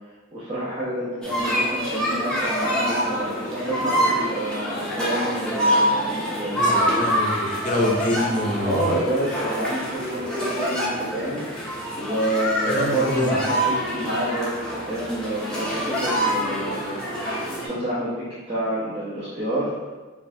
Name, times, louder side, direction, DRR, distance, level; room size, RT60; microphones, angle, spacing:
voice 1, 0.3-7.0 8.6-11.4 11.9-17.0 17.6-19.7, right 1 dB, 30° right, -11 dB, 0.8 m, -28 dB
sound 1, 1.2-17.7, equal, 5° left, 0.7 m, -26 dB
voice 2, 6.5-8.9 12.6-13.4, left 1 dB, 40° left, 0 dB, 0.6 m, -25 dB
5.3 x 2.5 x 2.7 m, 1.3 s
head